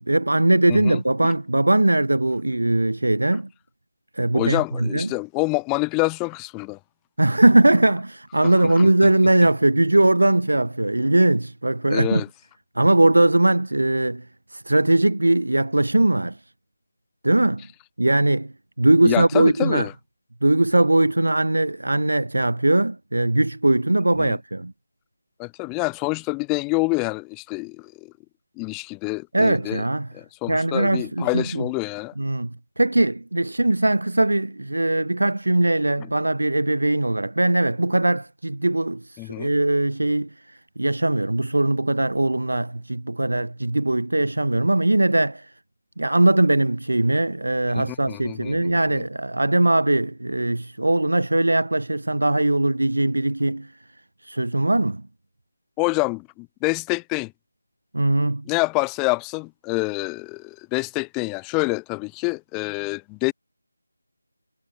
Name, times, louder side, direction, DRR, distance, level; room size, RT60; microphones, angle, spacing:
voice 1, 0.0-3.5 4.1-5.1 7.2-12.2 12.8-14.2 14.5-16.4 17.2-17.7 18.0-19.9 20.4-24.7 29.3-30.1 30.5-31.7 32.2-32.5 32.8-45.5 46.0-53.7 54.2-55.0 57.9-58.4, right 2 dB, 70° right, 2.8 m, -20 dB
voice 2, 4.3-6.8 8.4-8.9 11.9-12.3 19.0-19.9 24.2-24.3 25.4-28.1 28.6-29.8 30.1-32.1 36.0-36.1 39.2-39.5 47.7-48.7 55.8-57.3 58.5-63.3, left 30 dB, 10° left, 0.8 m, -27 dB
figure-of-eight pair, 160°, 0 cm